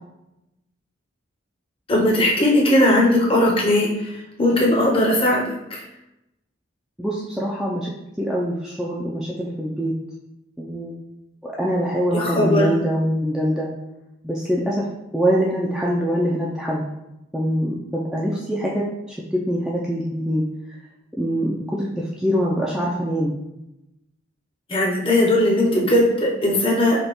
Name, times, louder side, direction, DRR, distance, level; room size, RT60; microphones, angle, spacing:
voice 1, 1.9-5.8 12.1-12.7 24.7-27.0, left 1 dB, 25° left, -2 dB, 0.7 m, -18 dB
voice 2, 7.0-7.9 8.2-9.9 10.6-11.0 11.4-13.7 14.2-14.9 15.1-16.8 17.3-20.4 21.2-23.4, equal, ahead, -5 dB, 0.3 m, -24 dB
5.1 x 2.3 x 2.9 m, 0.90 s
head